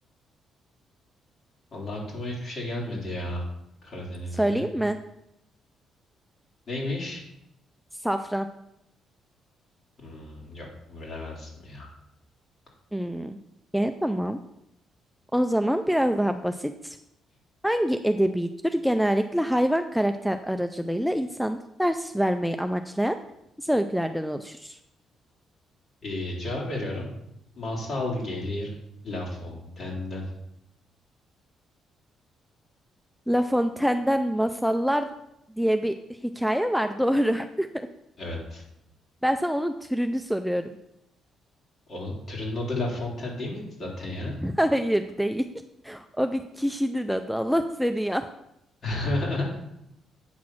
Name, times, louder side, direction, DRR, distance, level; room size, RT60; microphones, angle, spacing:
voice 1, 1.7-3.4 3.8-4.6 6.7-7.2 10.0-11.9 26.0-27.1 27.5-28.8 29.0-30.3 38.2-38.6 41.9-44.3 48.8-49.5, left 2 dB, 50° left, -3 dB, 3.3 m, -32 dB
voice 2, 4.4-5.0 8.0-8.5 12.9-13.4 13.7-14.4 15.3-17.0 17.6-23.2 23.6-24.8 33.3-35.1 35.6-35.9 36.2-37.9 39.2-40.8 44.4-45.4 45.8-48.3, equal, ahead, 7 dB, 0.4 m, -25 dB
8.5 x 3.9 x 6.0 m, 0.80 s
cardioid pair, 90°, 0 cm